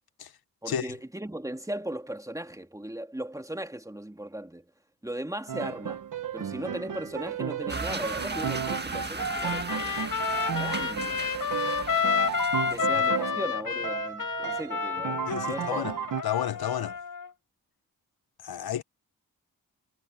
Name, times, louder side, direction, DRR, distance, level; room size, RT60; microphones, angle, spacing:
voice 1, 0.6-4.7 5.0-6.0 6.3-10.1 10.5-11.3 12.7-15.8, right 1 dB, 10° right, 2.9 m, -37 dB
Piano, 5.5-13.5 13.8-16.2, right 8 dB, 60° right, 1.1 m, -34 dB
sound 1, 7.7-13.3, right 3 dB, 30° right, 1.8 m, -37 dB
Trumpet, 9.2-17.3, left 6 dB, 65° left, 5.2 m, -30 dB
voice 2, 15.3-15.9 16.2-17.0 18.4-18.8, left 10 dB, 85° left, 1.0 m, -31 dB
cardioid pair, 80°, 36 cm